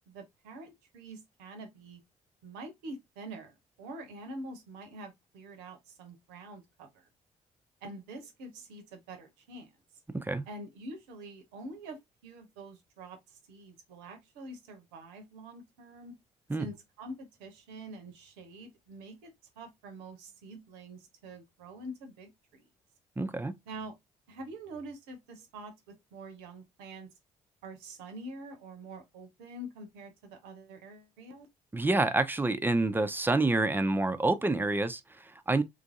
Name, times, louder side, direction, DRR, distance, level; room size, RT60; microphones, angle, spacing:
voice 1, 0.1-2.0 2.4-7.1 7.8-9.7 10.5-16.2 16.6-22.7 23.7-23.9 24.3-27.1 27.6-31.5, right 1 dB, 70° right, 0.7 m, -46 dB
voice 2, 10.1-10.4 16.5-16.7 23.2-23.5 31.7-35.6, right 2 dB, 10° right, 0.4 m, -28 dB
3.0 x 2.5 x 2.5 m
figure-of-eight pair, 45°, 18 cm